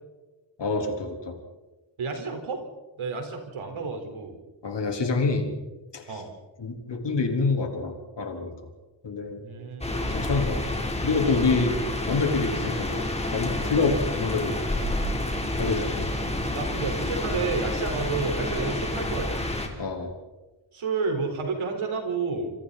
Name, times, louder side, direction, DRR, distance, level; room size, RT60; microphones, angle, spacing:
voice 1, 0.6-1.4 4.6-5.5 5.9-6.2 6.6-8.7 9.0-9.4 9.9-10.8 11.0-11.8 12.1-14.6 15.6-16.1 19.8-20.1, left 4 dB, 60° left, 3 dB, 3.9 m, -27 dB
voice 2, 2.0-2.6 3.0-4.4 6.1-6.3 9.4-10.1 16.5-19.5 20.7-22.5, right 4 dB, 85° right, 4 dB, 4.6 m, -30 dB
sound 1, 9.8-19.7, left 1 dB, 15° left, 3.6 m, -29 dB
27.0 x 27.0 x 4.2 m, 1.2 s
wide cardioid pair, 105°, 47 cm